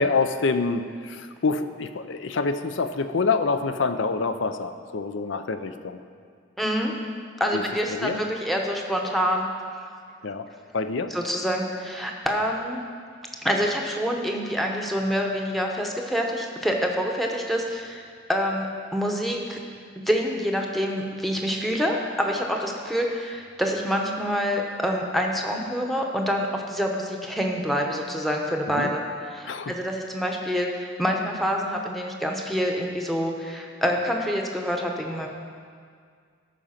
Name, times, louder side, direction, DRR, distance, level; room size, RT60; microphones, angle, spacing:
voice 1, 0.0-6.0 7.5-7.6 7.9-8.2 10.2-10.5 10.7-11.1 28.7-28.9 29.5-29.7, left 4 dB, 70° left, 10 dB, 0.5 m, -26 dB
voice 2, 6.6-6.9 7.4-9.5 11.1-12.8 13.4-18.0 18.3-18.7 18.9-19.6 20.1-29.0 29.3-35.3, equal, ahead, 1 dB, 0.8 m, -26 dB
13.5 x 5.2 x 5.7 m, 2.1 s
head